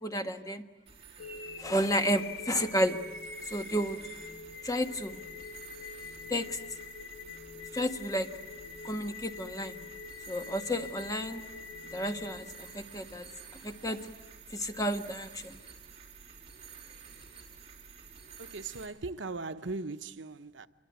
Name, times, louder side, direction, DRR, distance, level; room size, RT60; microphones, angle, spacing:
voice 1, 0.0-0.6 1.6-3.0 3.5-4.0 4.6-5.2 6.3-6.6 7.7-8.3 8.8-9.8 10.3-11.4 11.9-12.4 12.7-13.3 13.6-14.0 14.5-15.5, equal, 20° left, 1.4 m, -31 dB
sound 1, 0.9-18.9, right 6 dB, 30° right, 5.1 m, -51 dB
sound 2, 1.2-13.2, left 5 dB, 80° left, 3.0 m, -45 dB
voice 2, 18.4-20.7, right 3 dB, 75° right, 0.9 m, -39 dB
27.0 x 22.5 x 9.5 m
head